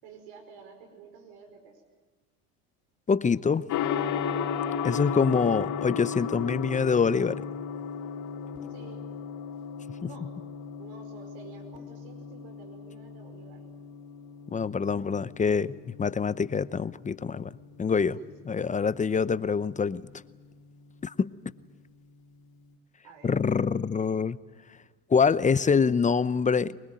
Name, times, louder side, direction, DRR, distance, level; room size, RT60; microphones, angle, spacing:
voice 1, 0.0-1.8 3.8-4.4 8.7-9.0 10.0-10.3 10.8-13.7 18.2-18.3 23.0-23.4, right 5 dB, 70° right, 6 dB, 5.2 m, -50 dB
voice 2, 3.1-3.7 4.8-7.4 14.5-15.7 16.0-17.5 17.8-18.2 18.5-20.0 21.0-21.3 23.2-24.4 25.1-26.8, left 5 dB, 20° left, 16 dB, 0.7 m, -25 dB
Gong, 3.7-22.7, left 7 dB, 55° left, 4.6 m, -36 dB
23.5 x 21.0 x 9.1 m, 1.3 s
hypercardioid pair, 85°, 38 cm